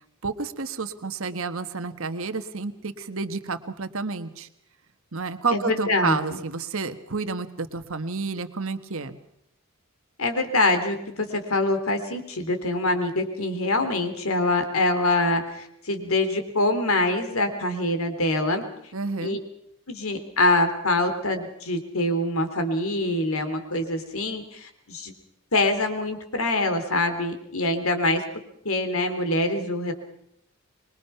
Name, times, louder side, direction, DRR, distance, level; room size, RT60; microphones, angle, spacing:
voice 1, 0.2-4.5 5.1-9.2 18.9-19.4, right 4 dB, 65° right, 9 dB, 1.4 m, -30 dB
voice 2, 5.5-6.4 10.2-18.6 19.2-19.4 19.9-25.1 25.5-28.2 28.7-29.9, left 2 dB, 65° left, 8 dB, 3.4 m, -24 dB
25.5 x 22.5 x 5.8 m, 0.76 s
head